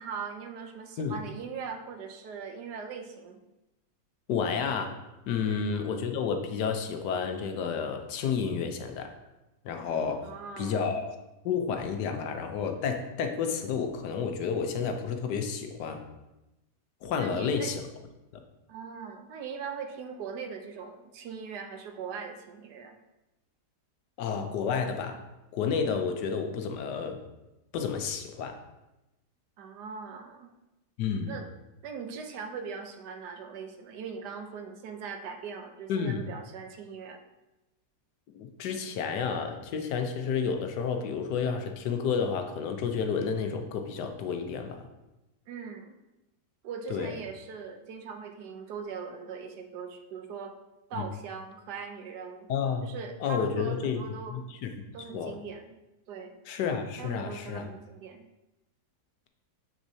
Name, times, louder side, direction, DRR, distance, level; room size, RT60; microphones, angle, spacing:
voice 1, 0.0-3.4 5.4-5.7 10.2-10.8 17.2-17.7 18.7-23.0 29.6-30.5 31.3-31.5 31.8-37.2 45.5-45.9 46.6-50.5 50.9-52.5 52.8-54.4 54.9-55.8 56.1-56.4 57.0-58.2, right 6 dB, 80° right, 5 dB, 1.3 m, -40 dB
voice 2, 4.3-4.9 5.3-9.2 9.6-10.3 10.6-11.0 11.4-16.0 17.0-17.8 24.2-25.2 25.5-27.2 27.7-28.6 31.0-31.4 35.9-36.2 38.3-44.9 46.9-47.2 51.0-51.1 52.5-52.9 53.2-54.0 54.3-54.7 55.1-55.4 56.5-57.7, left 6 dB, 85° left, 5 dB, 1.3 m, -30 dB
7.1 x 6.2 x 2.7 m, 0.98 s
omnidirectional pair, 1.7 m